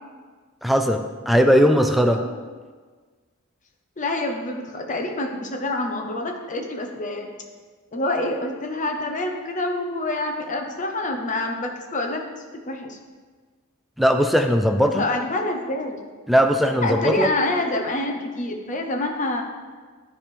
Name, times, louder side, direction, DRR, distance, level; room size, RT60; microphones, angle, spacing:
voice 1, 0.6-2.2 14.0-15.1 16.3-17.3, equal, ahead, 5 dB, 0.3 m, -19 dB
voice 2, 4.0-7.3 7.9-12.2 12.7-13.0 15.0-16.0 16.8-19.4, left 2 dB, 35° left, 3 dB, 0.7 m, -27 dB
9.9 x 3.4 x 4.5 m, 1.4 s
head